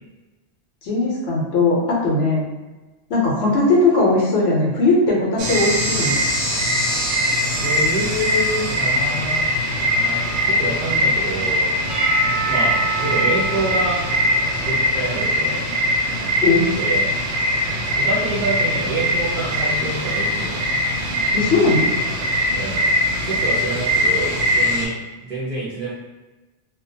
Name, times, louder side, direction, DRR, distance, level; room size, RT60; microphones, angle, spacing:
voice 1, 0.8-2.5 3.1-6.2 16.4-16.7 21.3-21.9, left 2 dB, 65° left, -3 dB, 0.8 m, -18 dB
sound 1, 5.4-24.9, equal, 90° right, 0.9 m, -21 dB
voice 2, 7.6-9.4 9.9-11.8 12.5-14.0 14.5-15.6 16.7-17.1 17.9-20.6 22.5-22.9 23.3-24.9 25.2-25.9, right 2 dB, 50° right, -8 dB, 0.6 m, -27 dB
Percussion / Church bell, 11.9-16.0, right 5 dB, 10° right, 0.6 m, -29 dB
2.3 x 2.2 x 2.6 m, 1.2 s
omnidirectional pair, 1.2 m